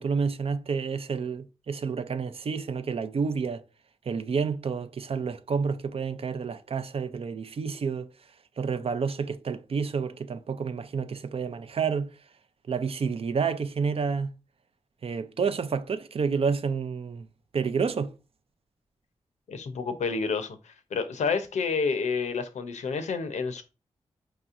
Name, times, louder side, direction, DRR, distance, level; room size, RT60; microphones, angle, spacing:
voice 1, 0.0-3.6 4.1-8.1 8.6-12.1 12.7-14.3 15.0-17.3 17.5-18.1, right 5 dB, 55° right, 0.5 m, -29 dB
voice 2, 19.5-23.6, left 5 dB, 75° left, 0.6 m, -29 dB
4.7 x 2.8 x 2.5 m
supercardioid pair, 40°, 12 cm